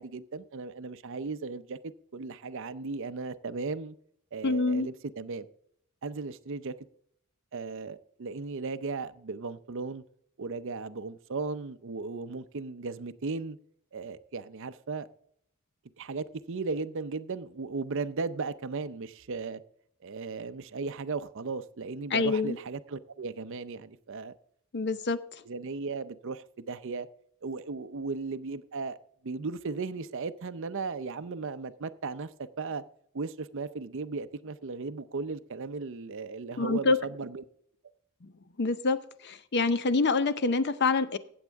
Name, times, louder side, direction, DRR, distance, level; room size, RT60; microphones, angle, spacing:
voice 1, 0.0-4.0 4.3-5.5 6.0-6.7 7.5-10.0 10.4-13.6 13.9-15.1 16.0-19.6 20.0-24.3 25.4-27.1 27.4-29.0 29.2-32.8 33.1-37.4, right 4 dB, 60° right, 0.6 m, -36 dB
voice 2, 4.4-4.9 22.1-22.6 24.7-25.2 36.6-37.0 38.6-39.0 39.2-41.2, left 3 dB, 50° left, 0.7 m, -26 dB
14.5 x 7.9 x 3.5 m
head